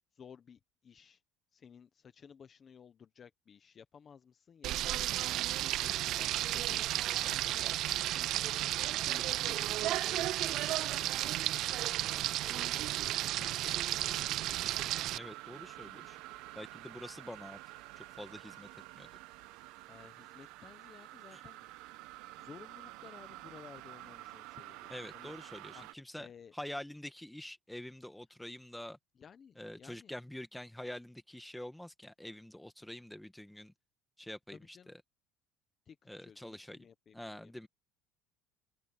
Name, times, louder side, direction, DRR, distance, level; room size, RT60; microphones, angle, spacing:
voice 1, 0.1-1.2 1.5-5.2 5.6-11.1 11.5-14.2 19.9-21.6 22.4-25.3 25.7-25.8 26.2-26.5 29.2-30.1 34.5-34.9 35.9-37.7, left 7 dB, 30° left, 1.1 m, -56 dB
Frying (food), 4.6-15.2, right 14 dB, 50° right, 0.3 m, -33 dB
sound 1, 8.1-25.9, right 18 dB, 70° right, 1.2 m, -50 dB
voice 2, 15.1-16.2 16.5-17.6 18.0-19.1 21.3-21.4 24.9-26.3 26.5-29.0 29.6-33.7 34.2-35.0 36.1-36.9 37.1-37.7, left 1 dB, 5° left, 1.6 m, -46 dB
cardioid pair, 150°, 0 cm